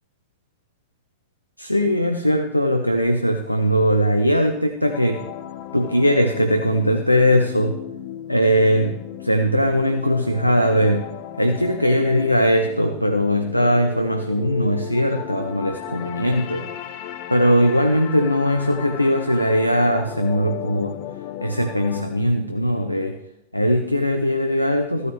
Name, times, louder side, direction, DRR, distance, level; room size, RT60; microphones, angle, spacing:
voice 1, 1.6-5.2 5.7-7.8 8.3-11.1 11.4-16.7 17.3-21.0 21.4-23.2 23.5-25.1, equal, 90° left, 6 dB, 0.6 m, -20 dB
sound 1, 4.8-22.0, left 10 dB, 45° left, 0.6 m, -35 dB
14.0 x 9.5 x 3.1 m, 0.83 s
figure-of-eight pair, 90°, 0 cm